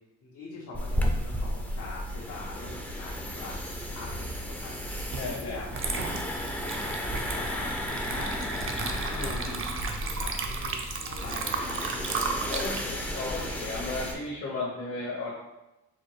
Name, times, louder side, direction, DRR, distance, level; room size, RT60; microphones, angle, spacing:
voice 1, 0.2-4.7 5.0-6.3 6.7-12.8, left 3 dB, 75° left, -6 dB, 0.9 m, -44 dB
sound 1, 0.7-14.1, equal, 5° left, 0.4 m, -33 dB
Water / Liquid, 5.1-5.3 5.7-14.3, right 5 dB, 45° right, 0.5 m, -35 dB
voice 2, 5.2-5.6 9.2-9.6 12.5-15.3, left 3 dB, 50° left, -5 dB, 0.8 m, -34 dB
4.2 x 2.2 x 3.2 m, 0.96 s
cardioid pair, 90°, 30 cm